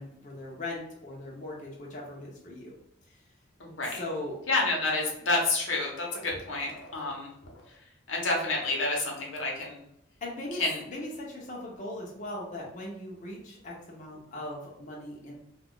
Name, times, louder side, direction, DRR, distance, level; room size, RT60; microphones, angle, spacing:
voice 1, 0.0-2.8 3.9-4.4 10.2-10.6 10.9-15.4, left 1 dB, 40° left, -3 dB, 0.6 m, -39 dB
voice 2, 3.6-4.0 4.5-7.3 8.1-9.8 10.5-10.8, left 2 dB, 85° left, -1 dB, 0.9 m, -29 dB
2.3 x 2.3 x 3.6 m, 0.79 s
head